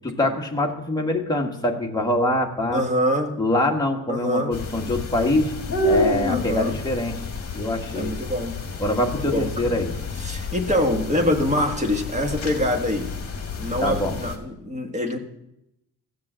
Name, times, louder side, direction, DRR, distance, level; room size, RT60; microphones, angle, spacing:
voice 1, 0.0-2.8 3.4-5.5 5.8-7.1 7.5-8.1 8.8-10.0 13.8-14.2, left 1 dB, 10° left, 0 dB, 1.6 m, -24 dB
voice 2, 2.7-3.4 4.1-4.5 6.3-6.8 7.9-8.6 9.2-9.7 10.2-13.1 13.6-15.2, equal, 20° right, 3 dB, 1.6 m, -24 dB
sound 1, 4.5-14.4, left 2 dB, 35° left, 2.2 m, -29 dB
15.5 x 7.6 x 7.4 m, 0.85 s
wide cardioid pair, 160°, 39 cm